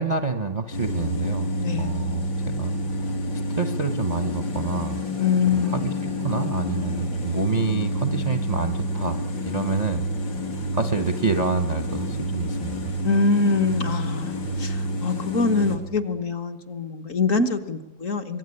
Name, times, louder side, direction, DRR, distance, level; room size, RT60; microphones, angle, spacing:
voice 1, 0.0-1.5 1.8-3.1 3.6-5.0 5.5-10.1 10.7-12.9, right 4 dB, 35° right, 8 dB, 0.7 m, -28 dB
sound 1, 0.7-15.8, equal, 80° left, 3.6 m, -28 dB
voice 2, 1.6-1.9 5.2-5.9 13.0-18.4, left 4 dB, 50° left, 6 dB, 1.4 m, -24 dB
24.5 x 21.5 x 9.9 m, 1.1 s
omnidirectional pair, 2.0 m